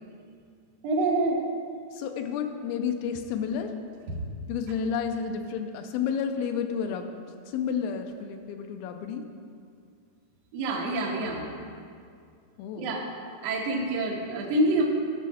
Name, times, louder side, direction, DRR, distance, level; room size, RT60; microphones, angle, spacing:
voice 1, 0.8-1.4 4.1-4.2 10.5-11.4 12.8-13.1 13.4-14.8, right 2 dB, 70° right, -2 dB, 1.5 m, -26 dB
voice 2, 1.9-3.7 4.5-7.1 7.5-9.3 12.6-12.9, left 7 dB, 80° left, 5 dB, 2.2 m, -31 dB
13.0 x 6.3 x 4.2 m, 2.3 s
omnidirectional pair, 4.7 m